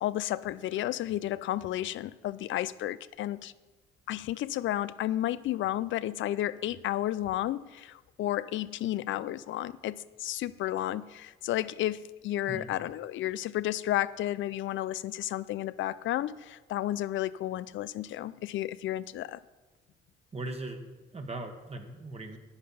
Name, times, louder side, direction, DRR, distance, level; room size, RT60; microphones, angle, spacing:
voice 1, 0.0-3.5 4.1-19.4, left 13 dB, 75° left, 18 dB, 0.5 m, -32 dB
voice 2, 20.3-20.8 21.1-22.4, right 2 dB, 30° right, 4 dB, 1.5 m, -39 dB
10.5 x 8.8 x 5.6 m, 1.2 s
cardioid pair, 90°, 20 cm